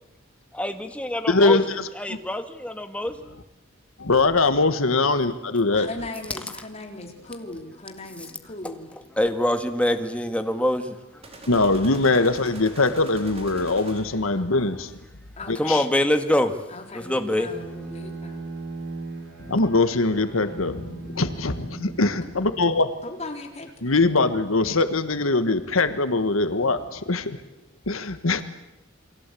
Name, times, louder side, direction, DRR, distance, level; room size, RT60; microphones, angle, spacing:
voice 1, 0.5-3.4 6.6-6.7 8.2-8.3 8.6-8.7 9.2-11.3 15.6-17.5, left 1 dB, 5° left, 7 dB, 1.9 m, -25 dB
voice 2, 1.3-1.6 4.0-5.9 11.5-14.9 15.5-15.8 19.4-23.0 23.8-27.4 27.9-28.4, left 3 dB, 85° left, 10 dB, 1.5 m, -22 dB
voice 3, 5.7-8.9 15.4-15.8 16.7-18.5 23.0-24.1, left 2 dB, 30° left, 3 dB, 4.2 m, -38 dB
sound 1, 11.2-14.4, right 2 dB, 30° right, 4.3 m, -44 dB
Bowed string instrument, 17.4-23.2, right 3 dB, 55° right, 7.2 m, -39 dB
29.0 x 23.0 x 8.5 m, 0.91 s
head